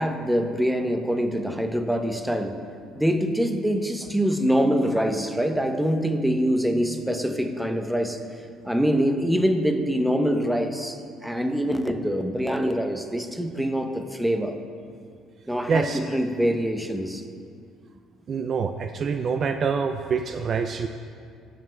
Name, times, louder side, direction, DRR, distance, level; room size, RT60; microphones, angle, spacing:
voice 1, 0.0-2.6 3.0-8.2 8.6-14.6 15.5-17.2, equal, 5° right, 6 dB, 0.7 m, -24 dB
voice 2, 15.7-16.0 18.3-20.9, right 5 dB, 45° right, 7 dB, 0.3 m, -26 dB
14.5 x 7.6 x 2.2 m, 2.2 s
supercardioid pair, 80°, 0 cm